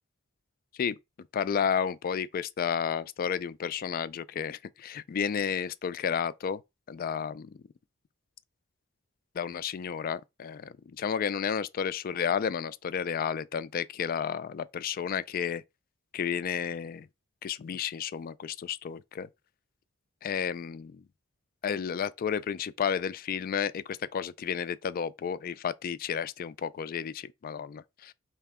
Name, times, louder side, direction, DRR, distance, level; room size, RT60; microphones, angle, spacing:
voice 1, 1.3-6.6 6.9-7.5 9.4-15.6 16.1-17.1 17.4-19.3 20.2-21.0 21.6-28.1, left 7 dB, 45° left, 0.3 m, -32 dB
4.3 x 2.9 x 3.5 m
head